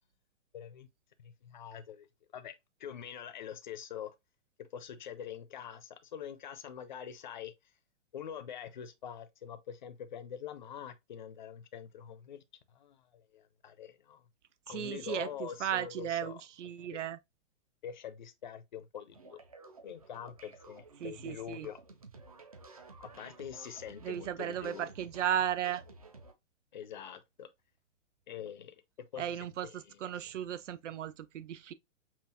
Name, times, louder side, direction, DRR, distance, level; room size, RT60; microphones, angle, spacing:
voice 1, 0.5-0.9 1.2-2.1 2.3-4.1 4.7-7.5 8.1-12.4 12.7-14.2 14.7-16.4 16.8-17.0 17.8-19.4 19.8-21.8 23.0-24.9 26.7-27.5 28.3-28.8 29.1-30.2, left 9 dB, 40° left, 0.5 m, -45 dB
voice 2, 14.7-17.2 21.0-21.7 24.0-25.8 29.2-31.7, right 10 dB, 75° right, 0.6 m, -35 dB
sound 1, 19.1-26.3, right 3 dB, 30° right, 0.4 m, -54 dB
5.6 x 2.4 x 2.7 m
hypercardioid pair, 170°, 36 cm